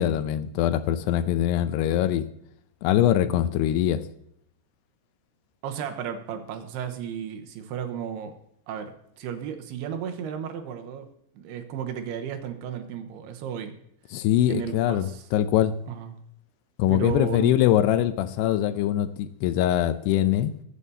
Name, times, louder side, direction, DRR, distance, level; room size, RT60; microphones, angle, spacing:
voice 1, 0.0-2.3 2.8-4.0 14.1-15.7 16.8-20.5, left 12 dB, 85° left, 2.7 m, -23 dB
voice 2, 5.6-8.3 8.7-11.1 11.3-13.7 14.4-15.2 15.9-16.1 16.9-17.5, right 8 dB, 85° right, 2.9 m, -34 dB
22.0 x 8.2 x 2.8 m
omnidirectional pair, 4.7 m